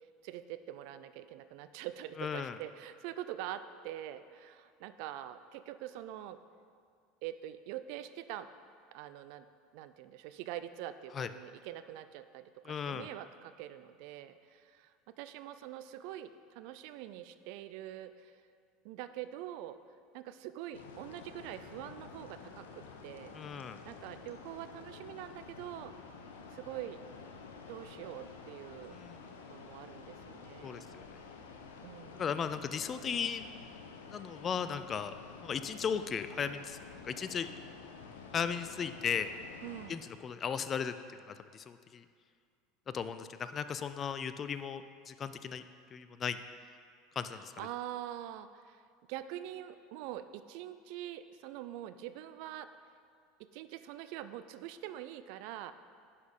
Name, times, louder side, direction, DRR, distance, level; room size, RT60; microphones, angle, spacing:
voice 1, 0.2-6.4 7.2-8.5 8.9-9.5 9.7-18.4 18.8-19.8 20.1-23.3 23.8-25.9 26.5-27.0 27.7-29.0 29.5-31.0 31.8-32.3 39.6-40.1 47.3-48.8 49.1-52.7 53.5-55.7, right 12 dB, 60° right, 12 dB, 0.4 m, -44 dB
voice 2, 2.2-2.5 11.2-11.3 12.7-13.1 23.3-23.8 28.9-29.2 30.6-30.8 32.1-33.5 34.1-35.1 35.4-36.8 37.1-37.5 38.3-39.3 39.9-40.9 41.3-42.0 42.9-45.6 45.9-46.4 47.2-47.5, left 7 dB, 35° left, 11 dB, 0.4 m, -36 dB
sound 1, 20.7-39.9, left 5 dB, 75° left, 0.7 m, -50 dB
11.0 x 4.3 x 5.2 m, 2.2 s
hypercardioid pair, 75°, 0 cm